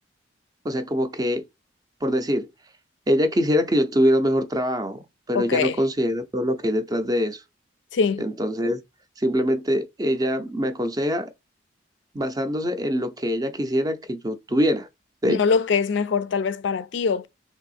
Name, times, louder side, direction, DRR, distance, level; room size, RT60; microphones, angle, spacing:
voice 1, 0.6-1.4 2.0-2.5 3.1-7.4 8.2-8.8 9.2-11.3 12.1-14.9 15.2-15.4, equal, 20° right, 0.5 m, -23 dB
voice 2, 5.3-5.8 7.9-8.2 15.3-17.3, left 5 dB, 70° left, 0.4 m, -23 dB
3.4 x 2.7 x 4.1 m
head